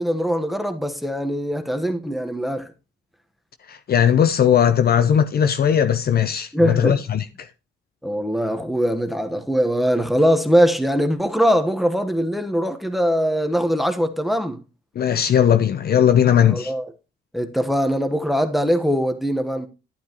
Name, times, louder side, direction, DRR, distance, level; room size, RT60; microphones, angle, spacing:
voice 1, 0.0-2.7 6.5-7.0 8.0-14.6 16.4-16.9 17.3-19.7, equal, ahead, 1.2 m, -21 dB
voice 2, 3.7-7.5 15.0-16.7, left 9 dB, 50° left, 0.7 m, -18 dB
12.0 x 8.5 x 3.0 m
cardioid pair, 90°, 20 cm